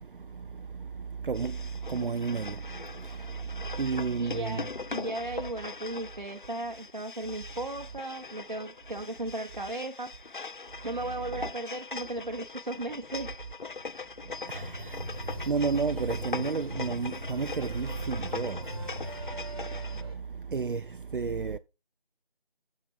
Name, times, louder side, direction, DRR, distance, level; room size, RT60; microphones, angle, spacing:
voice 1, 0.0-4.7 14.2-21.6, right 5 dB, 60° right, 0.4 m, -33 dB
sound 1, 1.3-20.0, left 4 dB, 60° left, 0.4 m, -41 dB
voice 2, 4.2-10.1 10.8-13.3, right 2 dB, 45° right, 0.9 m, -36 dB
sound 2, 14.5-20.1, equal, 25° right, 1.4 m, -40 dB
8.6 x 6.7 x 3.5 m
figure-of-eight pair, 170°, 30 cm